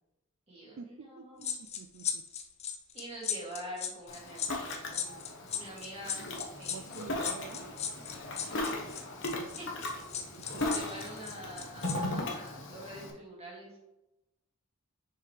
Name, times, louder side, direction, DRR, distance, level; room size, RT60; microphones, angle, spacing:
voice 1, 0.5-1.6 2.9-5.2 5.5-6.3 6.6-6.9 8.5-8.8 9.6-9.7 10.5-13.8, equal, 25° right, -5 dB, 2.3 m, -45 dB
voice 2, 1.2-1.5 1.8-2.2 6.7-7.7 10.5-10.6, right 5 dB, 60° right, 6 dB, 0.3 m, -47 dB
sound 1, 1.4-11.9 12.3-12.5, left 8 dB, 30° left, 0.5 m, -37 dB
Ocean, 4.1-13.1, left 1 dB, 55° left, 1.1 m, -38 dB
sound 2, 5.1-10.7, equal, 10° left, 1.0 m, -56 dB
6.6 x 4.7 x 3.2 m, 0.97 s
head